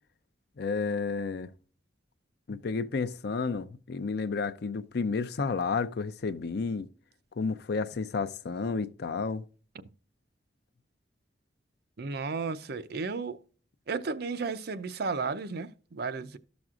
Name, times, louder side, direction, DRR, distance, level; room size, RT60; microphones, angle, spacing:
voice 1, 0.6-1.5 2.5-6.9 7.4-9.4, left 4 dB, 60° left, 0.5 m, -31 dB
voice 2, 12.0-13.4 13.9-16.4, right 4 dB, 60° right, 0.5 m, -33 dB
13.0 x 6.1 x 2.4 m
head